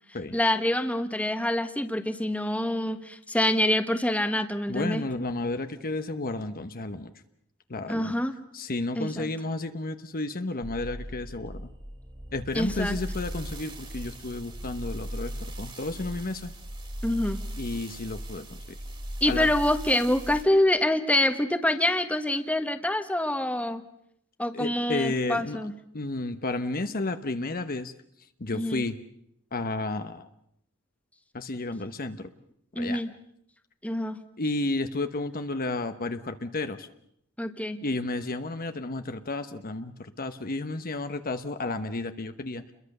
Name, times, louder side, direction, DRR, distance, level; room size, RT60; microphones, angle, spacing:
voice 1, 0.3-5.0 7.9-8.3 9.0-9.3 12.5-13.0 17.0-17.4 19.2-23.8 24.4-25.7 28.5-28.8 32.7-33.1 33.8-34.2 37.4-37.8, left 1 dB, 5° left, 8 dB, 1.4 m, -26 dB
voice 2, 4.7-7.1 7.7-8.1 8.5-11.7 12.3-16.5 17.6-18.8 19.3-19.5 24.5-25.6 25.9-27.9 28.4-29.0 29.5-30.3 31.3-32.3 32.7-33.0 34.4-36.9 37.8-42.7, left 2 dB, 45° left, 8 dB, 1.0 m, -32 dB
sound 1, 10.6-20.4, equal, 25° right, 3.0 m, -38 dB
29.0 x 22.0 x 6.7 m, 0.74 s
head